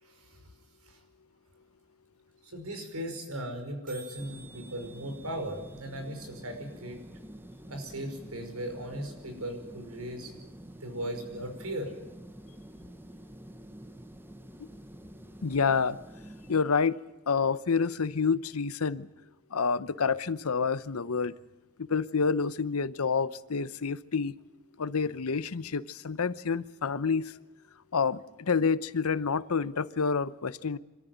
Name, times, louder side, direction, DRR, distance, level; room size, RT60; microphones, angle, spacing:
voice 1, 0.0-0.4 0.8-1.0 2.4-7.0 7.7-10.3 10.8-11.9, right 1 dB, 85° right, 6 dB, 5.4 m, -38 dB
sound 1, 1.8-1.9 2.1-2.2 2.3-2.6 2.8-2.9 3.1-3.3 3.6-3.7 3.9-7.8, right 3 dB, 40° right, 7.0 m, -55 dB
sound 2, 4.2-16.6, right 1 dB, 10° right, 1.0 m, -48 dB
voice 2, 15.4-16.0 16.5-17.0 17.3-19.1 19.5-21.3 21.8-24.3 24.8-27.3 27.9-30.8, left 5 dB, 75° left, 16 dB, 0.8 m, -28 dB
26.0 x 14.0 x 9.4 m, 1.1 s
head